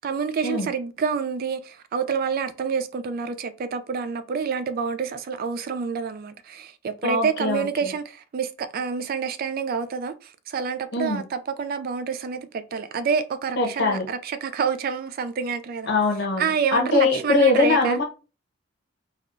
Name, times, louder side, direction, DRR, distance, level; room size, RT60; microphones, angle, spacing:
voice 1, 0.0-15.9 16.4-18.0, right 6 dB, 50° right, 0.3 m, -28 dB
voice 2, 7.0-7.9 10.9-11.2 13.6-14.1 15.9-18.0, left 3 dB, 60° left, 0.8 m, -22 dB
3.4 x 2.3 x 2.5 m
head